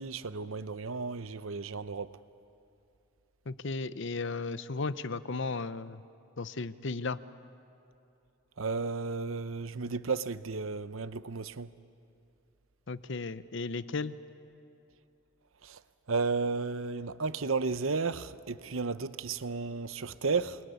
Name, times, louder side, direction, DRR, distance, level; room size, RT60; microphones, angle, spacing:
voice 1, 0.0-2.1 8.6-11.7 15.6-15.8 16.1-20.6, right 4 dB, 65° right, 0.8 m, -33 dB
voice 2, 3.5-6.0 6.4-7.2 12.9-14.2, left 3 dB, 55° left, 0.7 m, -35 dB
28.5 x 22.0 x 9.6 m
head